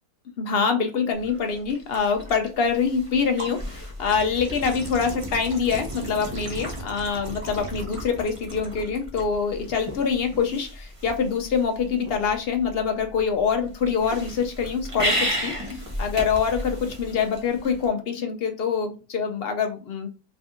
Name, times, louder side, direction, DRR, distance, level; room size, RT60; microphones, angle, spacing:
voice 1, 0.4-20.1, left 6 dB, 60° left, 5 dB, 0.6 m, -25 dB
sound 1, 1.1-17.9, equal, 30° right, 0.8 m, -34 dB
3.4 x 2.6 x 3.5 m, 0.34 s
omnidirectional pair, 1.5 m